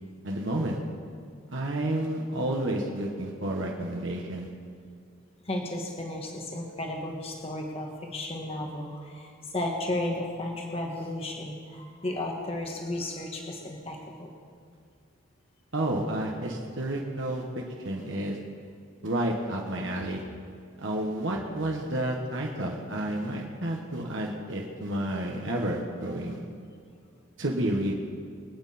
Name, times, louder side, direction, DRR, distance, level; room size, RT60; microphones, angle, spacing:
voice 1, 0.2-0.8 1.5-4.5 15.7-17.4 17.8-18.4 19.0-20.2 20.8-26.4 27.4-27.9, right 1 dB, 65° right, 0 dB, 1.5 m, -30 dB
voice 2, 5.4-14.3 22.5-23.0, left 1 dB, 30° left, 0 dB, 1.4 m, -34 dB
24.0 x 9.0 x 4.4 m, 2.3 s
head